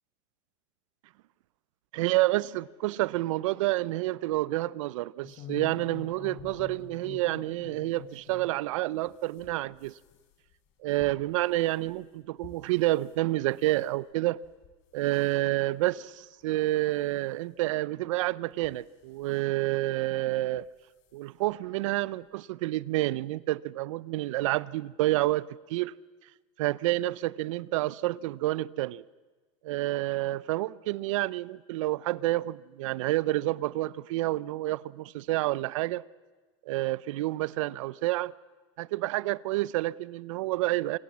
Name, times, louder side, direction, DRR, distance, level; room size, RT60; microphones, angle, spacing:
voice 1, 1.9-9.9 10.8-14.4 14.9-20.6 21.1-25.9 26.6-29.0 29.6-36.0 36.7-38.3 38.8-41.0, right 17 dB, 75° right, 0.6 m, -29 dB
sound 1, 5.2-8.6 9.0-13.1 13.5-13.9 14.4-14.8 15.1-15.4 16.0-16.1 16.4-16.5 17.7-17.8 18.5-19.3 20.5-20.7 21.0-21.1 21.5-21.6, left 8 dB, 50° left, 3.8 m, -48 dB
26.0 x 18.5 x 7.3 m
supercardioid pair, 145°, 17 cm